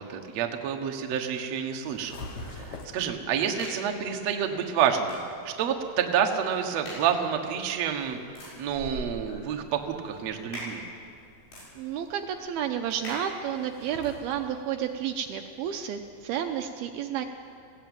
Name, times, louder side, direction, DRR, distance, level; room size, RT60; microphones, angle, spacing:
voice 1, 0.0-2.2 2.5-5.2 5.5-8.2 8.6-10.8, right 8 dB, 60° right, 3 dB, 1.7 m, -28 dB
sound 1, 1.8-3.1 6.5-16.6, left 2 dB, 55° left, 2.4 m, -48 dB
sound 2, 2.4-14.2, equal, 75° left, 10.0 m, -46 dB
voice 2, 11.8-17.3, right 9 dB, 80° right, 5 dB, 2.4 m, -31 dB
20.5 x 16.0 x 9.1 m, 2.5 s
omnidirectional pair, 4.9 m